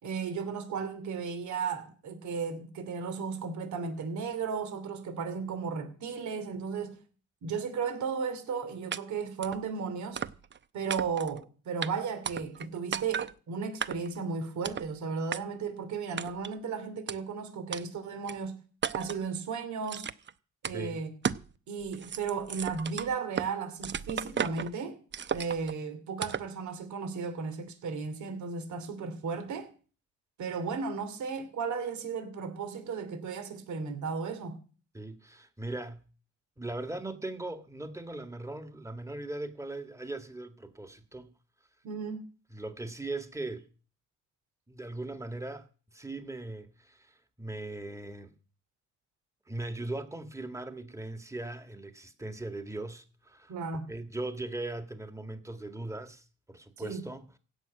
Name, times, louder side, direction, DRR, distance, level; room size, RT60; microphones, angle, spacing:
voice 1, 0.0-7.0 7.4-10.2 10.7-18.6 18.9-20.1 20.6-21.1 21.7-25.0 25.3-29.7 30.4-34.6 41.8-42.2 53.5-53.9 56.8-57.1, right 5 dB, 70° right, 2.8 m, -35 dB
sound 1, 8.9-9.0 9.4-9.6 10.2-10.6 10.9-11.4 11.8-11.9 12.3-12.7 12.9-13.3 13.8-14.2 14.6-14.9 15.3-15.4 16.2-16.5 17.1-17.2 17.7-17.8 18.3-18.4 18.8-19.2 19.9-20.3 20.6-20.8 21.2-21.5 21.8-23.5 23.8-24.7 25.1-25.7 26.2-26.5, right 7 dB, 40° right, 0.8 m, -34 dB
voice 2, 34.9-36.0 36.6-41.3 42.5-43.7 44.7-45.6 45.9-48.3 49.5-53.5 53.9-57.4, right 2 dB, 10° right, 1.9 m, -39 dB
16.5 x 6.4 x 9.1 m
cardioid pair, 90°, 30 cm